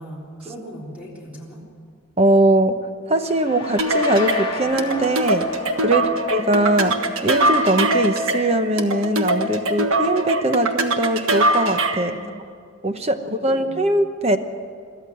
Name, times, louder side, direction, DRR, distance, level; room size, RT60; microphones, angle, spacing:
voice 1, 0.0-1.6 5.8-6.2 11.9-12.6 13.2-13.8, equal, 5° right, -4 dB, 3.7 m, -39 dB
voice 2, 2.2-2.8 3.1-5.5 5.8-12.1 12.8-14.4, right 1 dB, 30° right, 8 dB, 1.0 m, -21 dB
sound 1, 3.2-10.8, left 3 dB, 25° left, 2.2 m, -36 dB
sound 2, 3.8-12.1, right 1 dB, 80° right, 1.5 m, -22 dB
22.5 x 14.0 x 9.5 m, 2.2 s
head